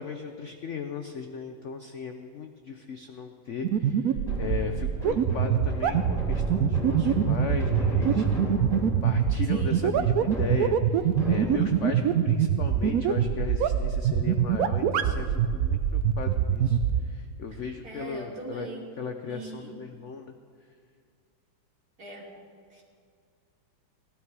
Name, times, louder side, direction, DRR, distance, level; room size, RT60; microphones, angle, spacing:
voice 1, 0.0-18.7 19.0-20.3, left 6 dB, 80° left, 6 dB, 0.6 m, -37 dB
sound 1, 3.6-17.0, right 9 dB, 75° right, 0.8 m, -24 dB
sound 2, 4.2-12.0, equal, ahead, 2.8 m, -34 dB
voice 2, 9.5-9.9 17.8-18.8 19.2-19.7 22.0-22.3 22.7-22.8, right 2 dB, 45° right, -3 dB, 3.1 m, -40 dB
17.5 x 12.5 x 4.7 m, 2.2 s
omnidirectional pair, 2.2 m